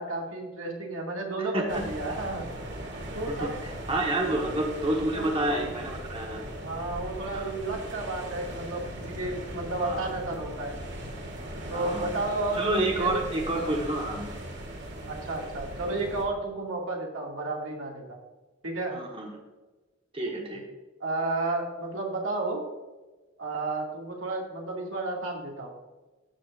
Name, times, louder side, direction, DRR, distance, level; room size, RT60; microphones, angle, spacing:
voice 1, 0.0-2.5 3.1-3.6 4.2-4.3 5.2-5.3 6.6-10.8 11.7-12.7 13.0-13.2 15.1-18.2 18.6-19.0 21.0-22.7 23.4-25.8, right 2 dB, 85° right, -1 dB, 2.1 m, -32 dB
voice 2, 1.4-1.8 3.3-6.4 7.3-7.4 9.8-10.1 11.7-12.1 12.6-14.3 18.9-19.3 20.1-20.6, right 1 dB, 30° right, 0 dB, 1.3 m, -29 dB
sound 1, 1.7-16.2, right 1 dB, 60° right, 1.8 m, -39 dB
14.0 x 6.6 x 2.5 m, 1.2 s
head